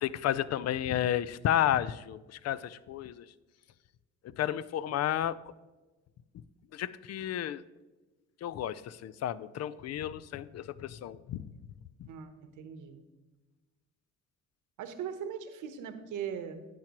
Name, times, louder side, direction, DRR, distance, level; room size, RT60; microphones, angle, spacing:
voice 1, 0.0-3.2 4.2-5.4 6.7-7.6 8.4-11.4 12.0-12.1, left 11 dB, 55° left, 18 dB, 0.4 m, -32 dB
voice 2, 12.1-13.0 14.8-16.7, right 8 dB, 85° right, 9 dB, 0.9 m, -40 dB
10.5 x 9.0 x 2.9 m, 1.2 s
cardioid pair, 90°, 30 cm